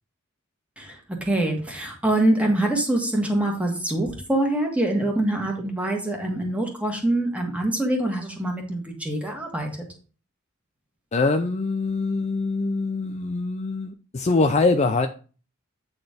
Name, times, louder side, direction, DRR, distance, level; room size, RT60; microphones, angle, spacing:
voice 1, 0.8-9.7, right 1 dB, 5° right, 1 dB, 1.7 m, -24 dB
voice 2, 11.1-15.1, left 3 dB, 35° left, 6 dB, 0.5 m, -23 dB
8.8 x 4.1 x 5.0 m, 0.38 s
head